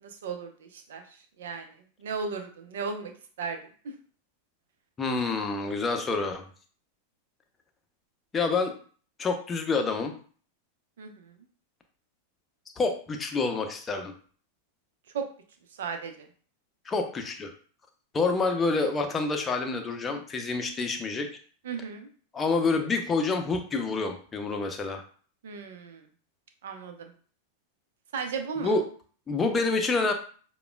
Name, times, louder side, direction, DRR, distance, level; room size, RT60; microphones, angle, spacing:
voice 1, 0.0-3.1 3.4-3.6 3.8-3.9 11.0-11.4 15.1-15.3 15.8-16.3 21.6-22.1 25.4-26.1 26.6-27.1 28.1-28.8, right 5 dB, 60° right, 6 dB, 0.7 m, -36 dB
voice 2, 5.0-6.4 8.3-8.7 9.2-10.1 12.8-14.1 16.8-17.5 18.1-21.3 22.3-25.0 28.6-28.8 29.3-30.1, left 3 dB, 20° left, 4 dB, 0.7 m, -27 dB
6.8 x 2.3 x 2.2 m, 0.44 s
figure-of-eight pair, 90°, 0 cm